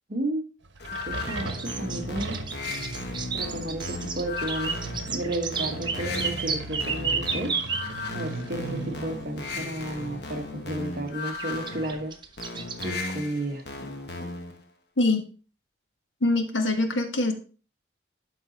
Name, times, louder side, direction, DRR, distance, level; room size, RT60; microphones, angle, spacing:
voice 1, 0.1-0.5 1.0-2.4 3.3-4.8 5.1-7.5 8.1-12.1 12.8-13.6, right 1 dB, 50° right, 5 dB, 1.2 m, -32 dB
sound 1, 0.6-11.0, right 2 dB, 85° right, 1.1 m, -39 dB
sound 2, 0.8-14.6, left 3 dB, 65° left, 1.2 m, -36 dB
sound 3, 1.3-7.9 9.5-9.6 11.4-13.1, right 5 dB, 25° right, 0.6 m, -32 dB
voice 2, 16.2-17.3, left 2 dB, 90° left, 6 dB, 1.3 m, -23 dB
11.5 x 4.0 x 3.9 m, 0.39 s
head